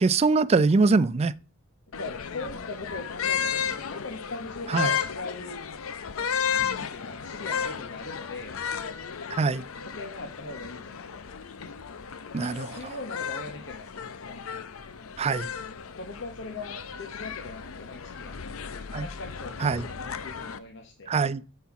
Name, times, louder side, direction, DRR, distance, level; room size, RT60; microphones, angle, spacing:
voice 1, 0.0-1.3 4.7-4.9 9.3-9.6 12.3-12.8 15.2-15.5 18.9-19.1 19.6-19.8 21.1-21.4, right 4 dB, 30° right, 0.3 m, -23 dB
sound 1, 1.9-20.6, left 7 dB, 75° left, 0.6 m, -34 dB
voice 2, 1.9-5.7 6.7-8.6 9.8-11.2 12.7-14.4 15.9-18.5 19.0-21.1, left 3 dB, 60° left, 1.1 m, -40 dB
9.1 x 4.4 x 5.9 m
head